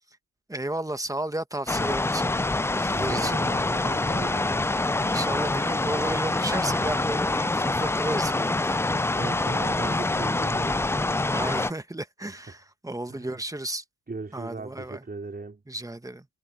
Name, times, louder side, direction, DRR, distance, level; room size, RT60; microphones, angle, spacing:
voice 1, 0.5-2.3 2.7-3.4 5.0-8.8 9.9-10.0 11.3-13.8 14.3-15.0 15.7-16.3, right 1 dB, 10° right, 1.4 m, -33 dB
sound 1, 1.7-11.7, left 2 dB, 10° left, 0.4 m, -26 dB
voice 2, 2.9-4.6 9.2-10.9 13.1-13.4 14.1-15.6, right 3 dB, 25° right, 4.5 m, -38 dB
cardioid pair, 70°, 35 cm